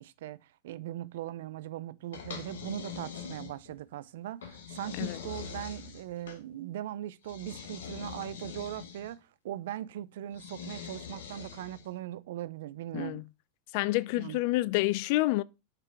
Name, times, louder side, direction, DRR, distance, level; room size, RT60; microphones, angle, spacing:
voice 1, 0.0-13.2 14.2-14.4, right 12 dB, 70° right, 0.5 m, -40 dB
sound 1, 2.1-3.8 4.4-6.4 7.2-9.1 10.3-11.9, left 7 dB, 85° left, 1.3 m, -43 dB
voice 2, 13.7-15.4, left 19 dB, 60° left, 0.3 m, -28 dB
6.5 x 3.7 x 4.6 m
hypercardioid pair, 110°, 0 cm